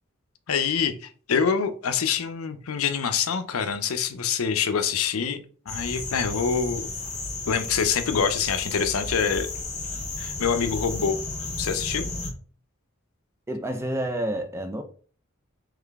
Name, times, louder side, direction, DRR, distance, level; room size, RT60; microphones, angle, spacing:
voice 1, 0.5-6.8 7.5-9.5 10.2-11.2 11.6-12.1, left 6 dB, 85° left, 0.5 m, -25 dB
sound 1, 5.7-12.3, left 3 dB, 35° left, 0.8 m, -33 dB
voice 2, 13.5-14.8, right 1 dB, 10° right, 0.4 m, -29 dB
3.7 x 3.2 x 3.5 m
head